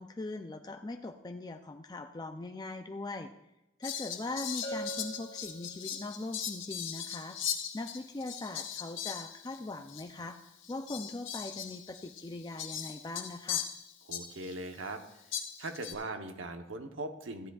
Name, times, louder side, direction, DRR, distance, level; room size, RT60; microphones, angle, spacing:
voice 1, 0.0-3.3 3.8-7.4 7.7-13.7, left 2 dB, 20° left, 5 dB, 0.4 m, -41 dB
Fowl, 3.8-9.6 9.9-10.0 10.6-14.5 15.3-15.9, left 9 dB, 85° left, 1.1 m, -39 dB
Bell, 4.6-6.3, right 1 dB, 50° left, 2.2 m, -43 dB
voice 2, 14.1-15.2 15.6-17.5, right 2 dB, 90° right, 6 dB, 0.9 m, -40 dB
15.0 x 10.0 x 2.4 m, 0.92 s
head